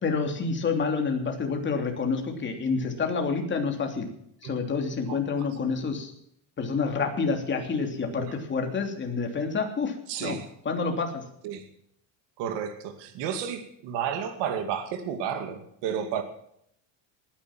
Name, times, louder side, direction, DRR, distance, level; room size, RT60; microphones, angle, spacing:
voice 1, 0.0-4.1 4.4-6.1 6.6-9.9 10.2-10.4 10.6-11.2, left 4 dB, 25° left, 3 dB, 3.1 m, -28 dB
voice 2, 10.1-10.5 11.4-11.7 12.4-16.2, right 8 dB, 70° right, 7 dB, 2.4 m, -32 dB
19.5 x 10.5 x 6.0 m, 0.71 s
cardioid pair, 155°, 43 cm